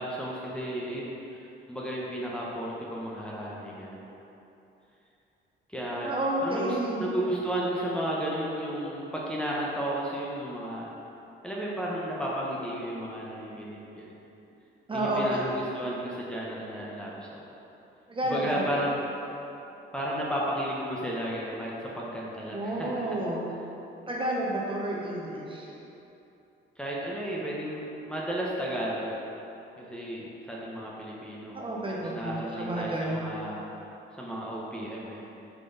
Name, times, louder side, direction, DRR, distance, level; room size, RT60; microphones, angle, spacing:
voice 1, 0.0-4.0 5.7-6.1 6.4-10.9 11.4-14.1 14.9-17.4 18.2-19.0 19.9-23.0 26.8-29.1 29.8-31.6 32.0-33.6 34.2-35.2, right 1 dB, 5° left, -6 dB, 1.0 m, -33 dB
voice 2, 6.0-7.0 14.9-15.4 18.1-18.9 22.5-23.5 24.1-25.7 31.5-33.2, right 1 dB, 25° right, -4 dB, 1.1 m, -30 dB
5.9 x 4.9 x 4.0 m, 2.9 s
cardioid pair, 90°, 20 cm